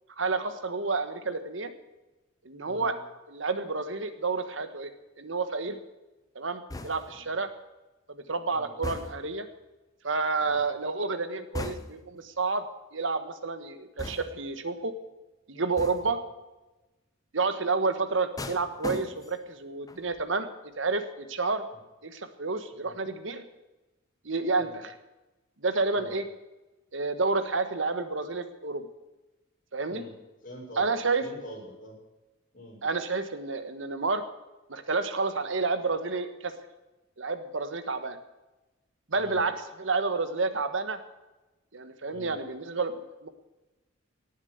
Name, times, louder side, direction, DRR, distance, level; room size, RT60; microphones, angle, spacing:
voice 1, 0.2-1.7 2.4-3.0 3.3-4.9 5.2-5.8 6.3-7.5 8.1-9.5 10.0-12.6 12.9-14.9 15.5-16.2 17.3-20.5 20.8-21.6 22.0-23.4 24.2-24.9 25.6-26.3 26.9-28.9 29.7-30.0 30.8-31.3 32.8-34.2 34.7-36.5 37.2-38.2 39.1-41.0 41.7-43.3, right 3 dB, 70° right, 9 dB, 1.4 m, -30 dB
sound 1, 6.7-7.3 8.8-9.4 11.5-12.2 14.0-14.5 15.8-16.2 18.4-19.5 19.9-20.2, left 2 dB, 20° left, 1.0 m, -39 dB
voice 2, 30.4-30.9 31.2-32.0 32.5-32.8 39.1-39.4 42.1-42.3, equal, 40° left, -3 dB, 6.7 m, -45 dB
18.5 x 7.4 x 8.1 m, 1.1 s
head